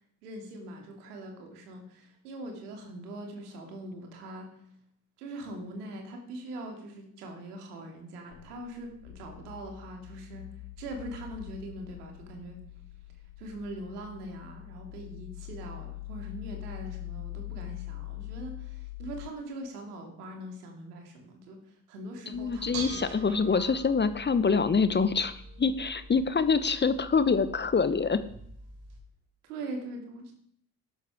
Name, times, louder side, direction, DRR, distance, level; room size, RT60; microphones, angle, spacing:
voice 1, 0.2-4.5 5.2-10.5 10.8-12.6 13.4-23.7 29.4-30.3, right 1 dB, 75° right, 3 dB, 2.8 m, -42 dB
sound 1, 8.3-19.3, left 17 dB, 60° left, 1.1 m, -43 dB
voice 2, 22.3-28.2, left 5 dB, 25° left, 13 dB, 1.0 m, -25 dB
Bell / Dishes pots and pans, 22.3-29.0, right 4 dB, 55° right, 3.6 m, -45 dB
12.0 x 11.0 x 5.0 m, 0.69 s
figure-of-eight pair, 50°, 46 cm